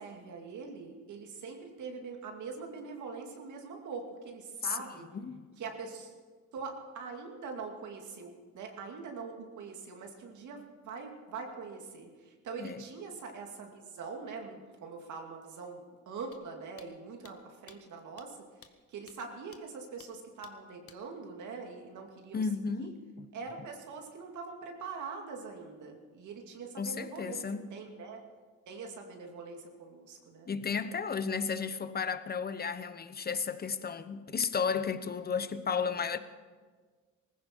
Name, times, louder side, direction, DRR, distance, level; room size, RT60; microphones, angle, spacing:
voice 1, 0.0-5.1 5.6-6.1 6.5-22.5 22.8-23.0 23.3-28.2 28.7-30.5, right 4 dB, 75° right, 2.5 m, -43 dB
voice 2, 5.1-5.5 12.6-12.8 22.3-23.0 26.8-27.6 30.5-36.2, left 6 dB, 30° left, 0.9 m, -33 dB
sound 1, 16.3-16.4 16.8-16.9 17.2-17.3 17.7-17.8 18.2-18.3 18.6-18.7 19.1-19.2 19.5-19.6 20.0-20.1 20.4-20.5 20.9-21.0, left 7 dB, 50° left, 1.3 m, -54 dB
19.0 x 15.0 x 4.6 m
cardioid pair, 90°, 30 cm